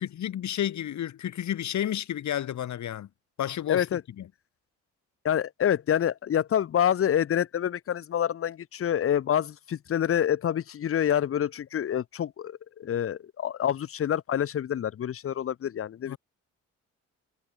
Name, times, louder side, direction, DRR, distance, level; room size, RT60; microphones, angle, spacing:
voice 1, 0.0-3.1 3.4-4.3 16.1-16.2, left 11 dB, 70° left, 5.6 m, -31 dB
voice 2, 3.7-4.0 5.2-16.1, left 9 dB, 45° left, 0.9 m, -27 dB
cardioid pair, 90°, 30 cm